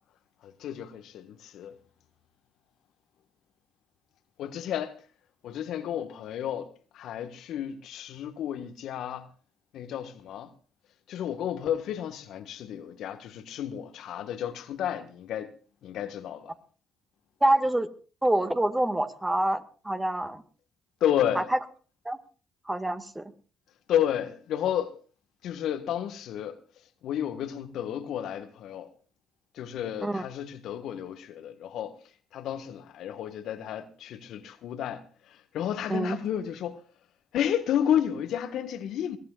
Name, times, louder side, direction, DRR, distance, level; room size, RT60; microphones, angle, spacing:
voice 1, 0.4-1.8 4.4-5.0 5.4-9.3 9.7-10.5 11.1-15.5 15.8-16.5 21.0-21.5 23.9-24.9 25.4-26.6 27.0-28.9 29.5-31.9 32.3-36.8 37.3-39.2, left 10 dB, 65° left, 1.5 m, -31 dB
voice 2, 17.4-17.9 18.2-20.4 21.4-21.5 22.1-22.2 22.7-23.3 30.0-30.2 35.9-36.2, right 1 dB, 15° right, 1.9 m, -26 dB
22.0 x 17.5 x 2.4 m
hypercardioid pair, 50°, 0 cm